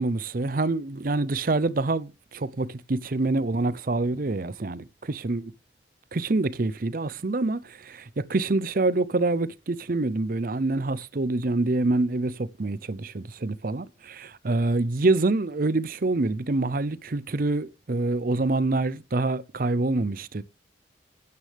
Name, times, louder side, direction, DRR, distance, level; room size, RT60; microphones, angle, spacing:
voice 1, 0.0-5.5 6.1-20.4, right 2 dB, 50° right, 0.6 m, -26 dB
13.0 x 9.6 x 3.4 m
head